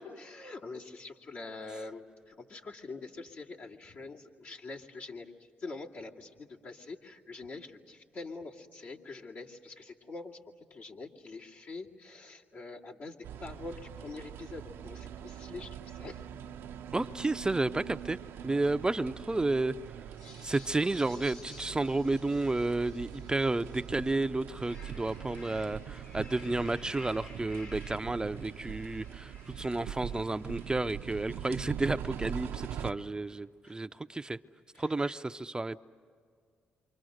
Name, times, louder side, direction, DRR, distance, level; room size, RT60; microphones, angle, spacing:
voice 1, 0.2-5.3 5.6-10.4 10.7-16.2 33.6-33.7 34.7-35.2, left 3 dB, 65° left, -2 dB, 2.5 m, -45 dB
sound 1, 13.2-32.9, right 9 dB, 75° right, 0.7 m, -43 dB
voice 2, 16.9-18.2 18.4-19.7 20.4-34.4 34.8-35.8, right 2 dB, 20° right, 11 dB, 0.6 m, -31 dB
sound 2, 20.1-24.0 24.4-33.1, left 3 dB, 80° left, 4.0 m, -55 dB
28.5 x 24.5 x 6.5 m, 2.1 s
supercardioid pair, 55°, 4 cm